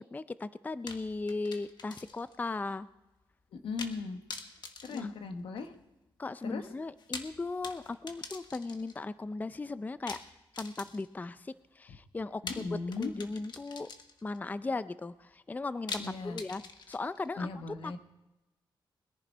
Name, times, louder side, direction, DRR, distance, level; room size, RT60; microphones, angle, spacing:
voice 1, 0.0-2.9 4.9-5.1 6.2-10.2 10.6-13.9 14.2-16.6 16.9-17.5 17.8-18.0, left 3 dB, 20° left, 14 dB, 0.4 m, -37 dB
sound 1, 0.9-2.4 2.7-2.8 3.8-4.0 4.3-5.8 6.9-9.0 10.1-11.2 12.5-14.4 15.9-17.3, left 4 dB, 55° left, 1.3 m, -44 dB
voice 2, 3.5-4.2 4.8-5.7 6.4-6.6 12.4-13.1 16.0-16.4 17.4-18.0, left 4 dB, 85° left, 7 dB, 1.3 m, -37 dB
21.0 x 10.5 x 4.5 m, 1.0 s
cardioid pair, 105°, 9 cm